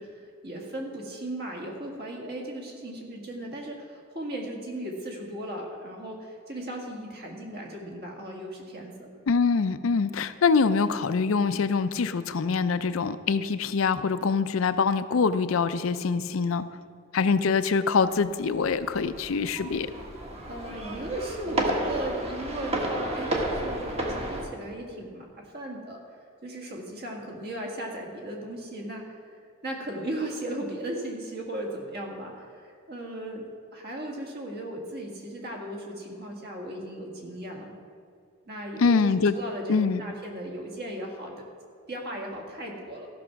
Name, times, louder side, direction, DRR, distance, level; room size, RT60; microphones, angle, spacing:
voice 1, 0.0-9.1 20.5-26.0 26.4-29.2 29.6-37.7 38.5-41.5 41.9-43.1, right 1 dB, 50° right, 0 dB, 2.0 m, -37 dB
voice 2, 9.3-16.7 17.1-19.9 38.8-39.3 39.7-40.0, left 5 dB, 80° left, 12 dB, 0.5 m, -24 dB
sound 1, 18.3-24.4, right 1 dB, 30° right, 1.3 m, -32 dB
14.5 x 6.1 x 5.8 m, 2.3 s
head